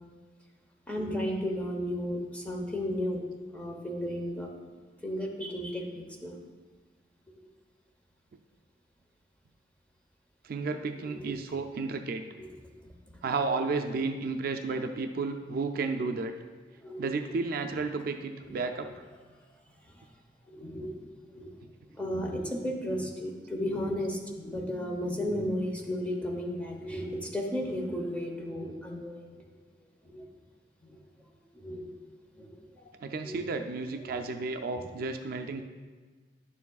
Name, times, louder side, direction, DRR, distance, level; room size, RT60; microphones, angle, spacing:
voice 1, 0.9-3.2 3.5-4.5 5.0-6.4 11.1-11.3 12.8-12.9 16.8-17.1 18.4-18.6 20.5-20.9 21.3-21.5 21.9-29.5 30.0-30.3 30.8-31.0 31.5-31.9 32.4-32.9 33.2-33.5 34.0-34.2 34.8-34.9 35.5-35.6, equal, 10° left, 0 dB, 0.9 m, -34 dB
voice 2, 10.4-12.2 13.2-16.3 17.0-18.9 33.0-35.6, right 4 dB, 55° right, 6 dB, 0.4 m, -32 dB
10.5 x 7.0 x 2.3 m, 1.4 s
head